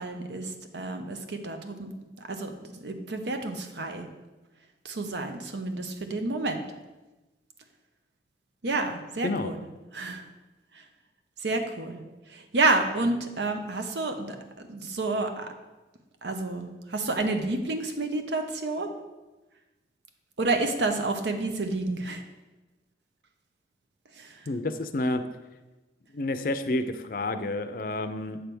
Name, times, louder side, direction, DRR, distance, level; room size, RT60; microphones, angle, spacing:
voice 1, 0.0-1.9 2.3-2.5 2.8-4.1 4.8-6.6 8.6-9.6 9.9-10.2 11.4-12.0 12.3-14.4 14.7-15.5 16.2-18.9 20.4-22.2 24.2-24.3, right 2 dB, 80° right, 6 dB, 0.7 m, -29 dB
voice 2, 24.5-25.2 26.1-28.4, left 2 dB, 50° left, 9 dB, 0.4 m, -29 dB
7.8 x 3.4 x 6.0 m, 1.1 s
head